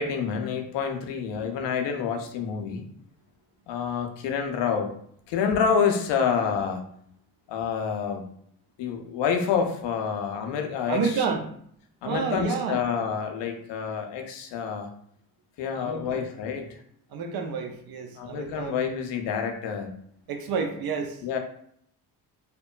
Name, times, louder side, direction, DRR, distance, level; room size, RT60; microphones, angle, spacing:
voice 1, 0.0-2.8 3.7-5.0 5.3-6.8 7.5-8.2 8.8-11.0 12.0-14.9 15.6-16.8 18.1-19.9 21.2-21.4, left 6 dB, 65° left, 5 dB, 0.6 m, -28 dB
voice 2, 10.9-11.5 12.0-12.8 15.7-16.3 17.1-18.8 20.3-21.2, right 5 dB, 50° right, 5 dB, 0.6 m, -30 dB
2.8 x 2.1 x 2.2 m, 0.65 s
hypercardioid pair, 55°, 47 cm